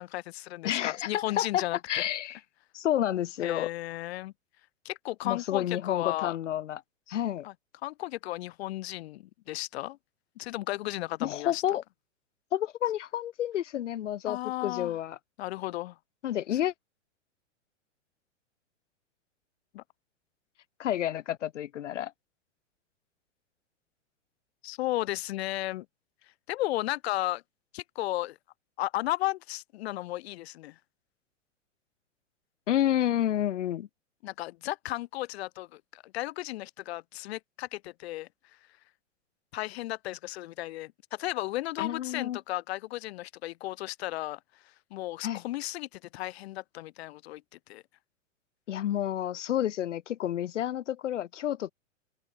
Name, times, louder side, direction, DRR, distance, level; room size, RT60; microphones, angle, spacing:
voice 1, 0.0-2.1 3.4-4.3 4.8-6.4 7.4-7.5 7.8-10.0 10.4-11.6 14.3-15.0 15.4-15.9 16.5-16.6 19.7-19.8 24.6-25.9 26.5-27.4 27.7-28.4 28.8-30.8 34.2-38.3 39.5-44.4 44.9-47.4 47.7-47.8, left 16 dB, 55° left, 0.9 m, -34 dB
voice 2, 0.6-2.4 2.7-3.7 5.2-6.8 7.1-7.5 11.2-11.8 12.5-15.2 16.2-16.7 20.8-22.1 32.7-33.9 41.8-42.4 45.2-45.4 48.7-51.7, left 11 dB, 70° left, 1.6 m, -30 dB
open air
hypercardioid pair, 115°, 37 cm